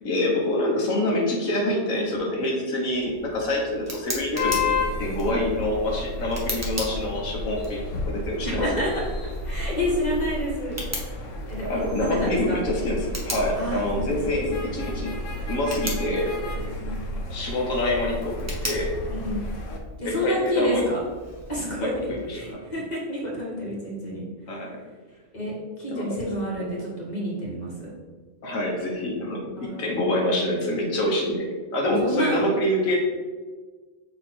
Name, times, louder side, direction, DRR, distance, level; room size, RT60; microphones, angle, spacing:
voice 1, 0.0-7.8 8.1-8.6 11.6-15.1 15.5-16.3 17.3-18.4 18.6-18.9 20.0-20.8 21.8-22.6 24.5-24.8 25.9-26.2 26.6-26.7 28.4-31.5 31.7-33.0, left 1 dB, 85° left, -1 dB, 1.5 m, -26 dB
Tick, 2.9-22.5, equal, 15° right, 0.9 m, -40 dB
sound 1, 4.3-19.8, left 2 dB, 70° left, 1.1 m, -32 dB
voice 2, 8.4-9.0 9.4-10.8 11.1-11.2 11.5-12.6 13.6-15.0 16.8-17.0 19.1-19.4 20.0-21.0 21.5-24.3 24.5-24.6 25.3-27.9 29.6-30.1 31.8-32.4, equal, 30° left, -4 dB, 1.6 m, -29 dB
6.5 x 3.2 x 4.5 m, 1.4 s
omnidirectional pair, 1.4 m